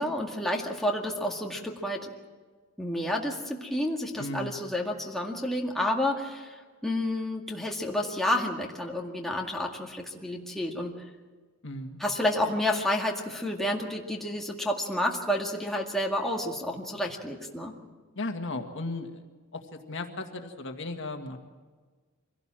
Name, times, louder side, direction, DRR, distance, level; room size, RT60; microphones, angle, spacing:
voice 1, 0.0-2.1 2.8-11.0 12.0-17.8, left 1 dB, ahead, -1 dB, 2.0 m, -30 dB
voice 2, 4.2-4.5 11.6-12.0 18.2-19.2 19.5-21.4, left 2 dB, 60° left, 4 dB, 1.9 m, -35 dB
24.5 x 17.5 x 7.6 m, 1.4 s
head